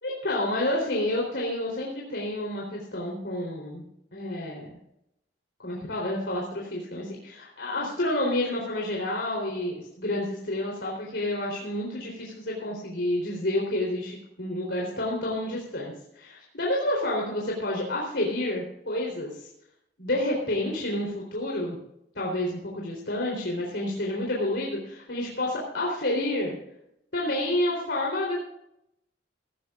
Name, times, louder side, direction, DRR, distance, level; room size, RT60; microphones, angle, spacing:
voice 1, 0.0-3.8 4.1-4.7 5.6-19.5 20.0-21.8 22.2-26.6 27.1-28.4, left 1 dB, 70° left, -2 dB, 4.0 m, -29 dB
18.5 x 14.5 x 2.6 m, 0.79 s
head